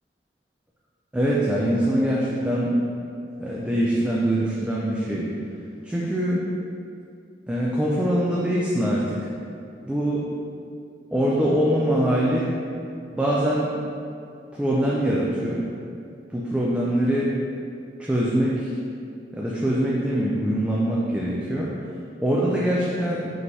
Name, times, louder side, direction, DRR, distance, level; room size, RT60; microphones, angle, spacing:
voice 1, 1.1-2.7 3.4-5.3 5.8-6.4 7.5-9.2 9.8-10.2 11.1-12.5 13.1-13.7 14.5-15.6 16.3-17.3 18.0-18.7 19.3-21.7 22.2-23.3, right 1 dB, 5° right, -6 dB, 0.3 m, -23 dB
4.2 x 3.2 x 2.8 m, 2.5 s
head